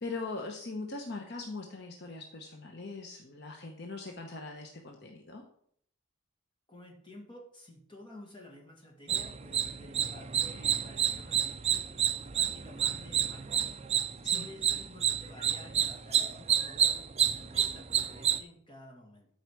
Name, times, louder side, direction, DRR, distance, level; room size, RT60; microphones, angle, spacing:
voice 1, 0.0-5.4 14.2-14.5, left 3 dB, 50° left, 2 dB, 0.9 m, -41 dB
voice 2, 6.7-19.3, left 1 dB, 25° left, 0 dB, 2.1 m, -52 dB
sound 1, 9.1-18.4, right 9 dB, 30° right, 0.4 m, -30 dB
12.5 x 4.9 x 4.7 m, 0.65 s
head